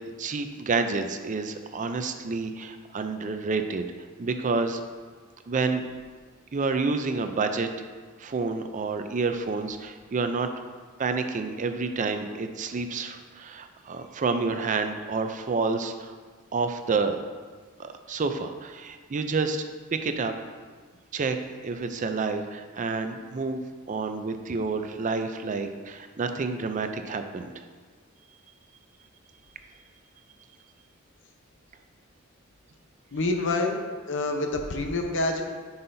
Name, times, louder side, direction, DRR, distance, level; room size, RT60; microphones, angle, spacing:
voice 1, 0.2-3.8 4.2-4.8 5.5-5.9 6.5-7.7 8.2-10.5 11.0-16.1 16.5-17.2 17.8-20.3 21.1-21.4 21.6-23.6 23.9-27.6, right 4 dB, 35° right, 7 dB, 0.4 m, -29 dB
voice 2, 33.1-33.8 34.1-35.4, left 2 dB, 60° left, 4 dB, 0.8 m, -27 dB
9.7 x 5.5 x 2.7 m, 1.5 s
head